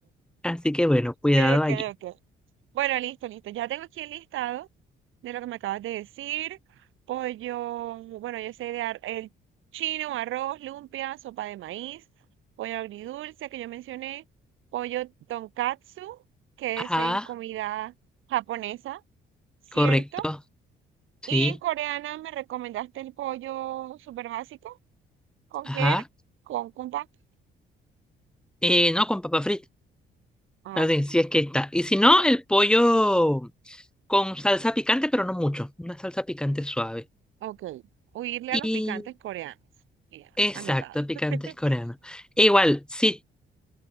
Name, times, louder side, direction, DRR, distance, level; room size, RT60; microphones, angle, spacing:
voice 1, 0.4-1.8 16.8-17.3 19.7-20.4 21.3-21.5 25.7-26.0 28.6-29.6 30.8-33.8 34.1-37.0 38.5-39.0 40.4-43.3, left 1 dB, 5° left, 1.3 m, -23 dB
voice 2, 1.3-2.1 2.7-4.7 5.2-6.6 7.1-9.3 9.7-12.0 12.6-14.2 14.7-16.2 16.6-17.9 18.3-19.0 19.7-20.3 21.3-24.8 25.5-26.0 26.5-27.1 30.6-31.0 37.4-37.8 38.1-39.5 40.1-40.3 40.5-41.0 41.3-41.4, right 14 dB, 85° right, 2.4 m, -33 dB
cardioid pair, 90°, 20 cm